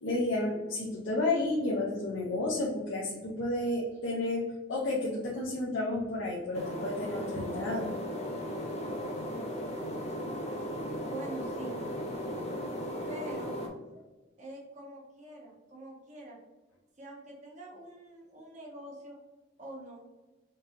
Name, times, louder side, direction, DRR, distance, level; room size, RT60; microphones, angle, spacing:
voice 1, 0.0-7.9, left 2 dB, 85° left, -4 dB, 0.7 m, -31 dB
sound 1, 6.5-13.7, equal, 35° left, 0.7 m, -36 dB
voice 2, 11.0-11.8 13.1-13.6 14.4-16.4 17.0-19.2 19.6-20.1, right 1 dB, 40° right, -3 dB, 1.3 m, -45 dB
5.4 x 2.8 x 2.5 m, 1.2 s
head